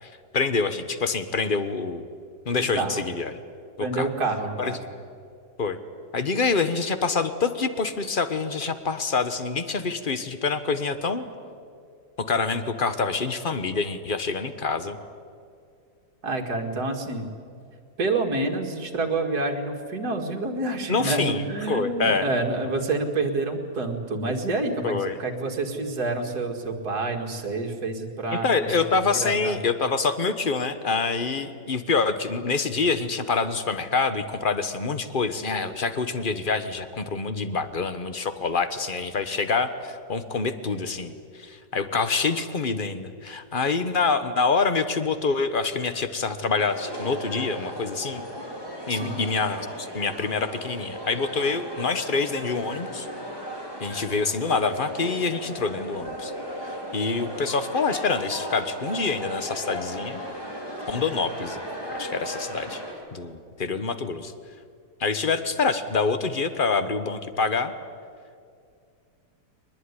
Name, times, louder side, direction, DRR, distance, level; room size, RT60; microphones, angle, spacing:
voice 1, 0.0-2.0 2.4-3.3 3.8-4.1 4.6-4.8 5.6-5.8 6.1-11.2 12.2-15.0 20.9-22.3 24.8-25.2 28.3-48.2 48.9-53.1 53.8-56.3 56.6-60.2 60.9-61.6 61.9-62.8 63.1-64.3 65.0-67.7, left 4 dB, 30° left, 10 dB, 1.3 m, -26 dB
voice 2, 2.7-3.1 3.8-4.8 16.2-17.3 18.0-29.6 48.9-49.2, right 3 dB, 65° right, 3 dB, 2.7 m, -28 dB
sound 1, 46.6-62.9, equal, 15° left, 4.1 m, -36 dB
22.5 x 20.5 x 9.8 m, 2.3 s
omnidirectional pair, 1.9 m